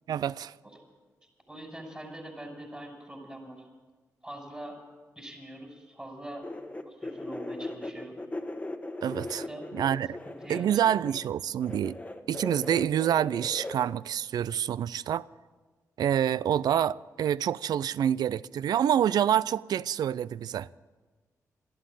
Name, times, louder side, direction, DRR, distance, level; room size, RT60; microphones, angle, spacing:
voice 1, 0.1-0.5 9.0-9.4 9.7-10.2 10.5-12.0 12.3-15.2 16.0-20.7, right 10 dB, 75° right, 0.4 m, -27 dB
voice 2, 1.5-3.6 4.2-4.8 5.2-6.5 6.9-8.2 9.3-9.7 10.2-10.8, right 1 dB, 15° right, 5.9 m, -43 dB
sound 1, 6.4-11.3 11.6-13.8, left 2 dB, 20° left, 1.3 m, -39 dB
13.5 x 11.5 x 8.9 m
cardioid pair, 55°, 7 cm